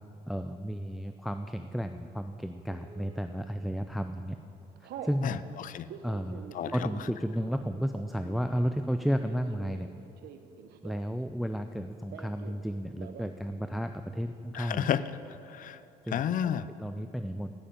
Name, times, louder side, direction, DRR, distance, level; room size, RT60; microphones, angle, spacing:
voice 1, 0.3-4.4 5.0-5.4 6.0-6.4 6.7-9.9 10.8-14.9 16.1-16.2 16.8-17.5, equal, ahead, 8 dB, 0.4 m, -33 dB
Telephone, 2.7-3.2 3.8-4.0 4.3-5.2 5.7-11.3 11.5-12.6 12.9-13.4 13.7-13.8 14.0-14.6, right 8 dB, 70° right, 0.9 m, -47 dB
voice 2, 5.2-5.9 6.5-6.9 14.5-15.0 15.5-15.8 16.1-16.7, left 9 dB, 50° left, 15 dB, 0.5 m, -31 dB
12.5 x 6.9 x 8.9 m, 2.7 s
cardioid pair, 110°, 17 cm